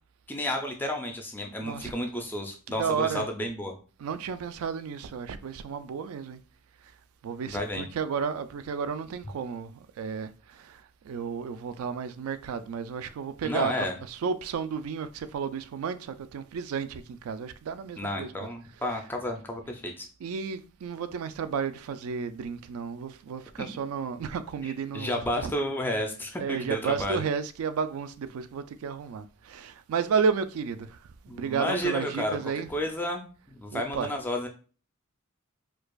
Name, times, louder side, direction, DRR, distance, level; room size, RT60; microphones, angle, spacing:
voice 1, 0.3-3.7 7.5-7.9 13.4-14.0 18.0-20.1 24.6-27.2 31.3-32.4 32.7-34.5, left 1 dB, 10° left, 0.4 m, -31 dB
voice 2, 1.6-1.9 2.7-3.3 4.0-6.4 7.2-19.0 20.2-25.5 26.4-31.0 31.3-32.8 33.7-34.1, right 6 dB, 70° right, 0.3 m, -32 dB
4.5 x 2.4 x 2.3 m
head